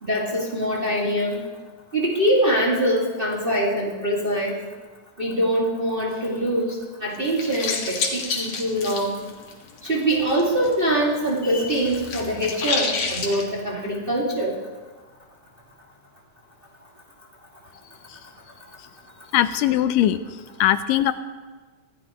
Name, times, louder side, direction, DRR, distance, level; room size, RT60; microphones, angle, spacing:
voice 1, 0.0-1.4 1.9-4.6 5.2-9.2 9.8-14.5, right 1 dB, 20° right, -5 dB, 1.8 m, -23 dB
sound 1, 7.1-10.8 11.1-13.5, left 4 dB, 50° left, 2.3 m, -29 dB
voice 2, 19.3-20.2 20.6-21.1, left 12 dB, 85° left, 12 dB, 2.3 m, -20 dB
25.5 x 15.5 x 3.1 m, 1.3 s
omnidirectional pair, 3.8 m